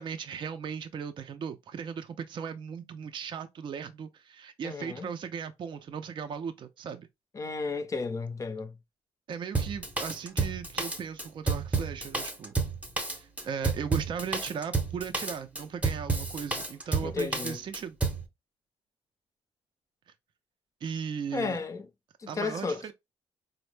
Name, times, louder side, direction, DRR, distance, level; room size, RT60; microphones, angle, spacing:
voice 1, 0.0-7.1 9.3-12.6 13.0-18.0 20.8-21.6 22.3-22.9, right 7 dB, 40° right, 0.4 m, -37 dB
voice 2, 4.6-5.1 7.3-8.7 17.0-17.6 21.3-21.9 22.2-22.8, left 4 dB, 25° left, 0.5 m, -33 dB
Drum kit, 9.6-18.2, right 3 dB, 10° right, 0.7 m, -30 dB
4.3 x 2.0 x 3.1 m
cardioid pair, 135°, 12 cm